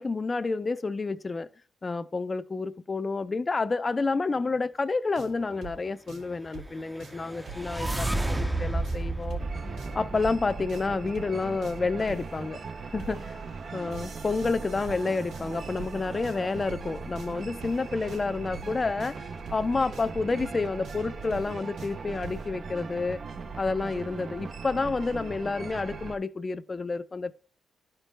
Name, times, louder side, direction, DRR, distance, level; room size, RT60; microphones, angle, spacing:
voice 1, 0.0-1.5 1.8-9.4 9.9-12.6 12.9-13.4 13.7-23.2 23.6-27.3, left 3 dB, 35° left, 0.5 m, -29 dB
sound 1, 5.1-22.5, right 4 dB, 85° right, 2.4 m, -47 dB
sound 2, 6.8-11.0, right 2 dB, 10° right, 0.6 m, -31 dB
sound 3, 9.4-26.2, right 4 dB, 50° right, 0.6 m, -39 dB
12.0 x 4.6 x 3.3 m
supercardioid pair, 60°, 0 cm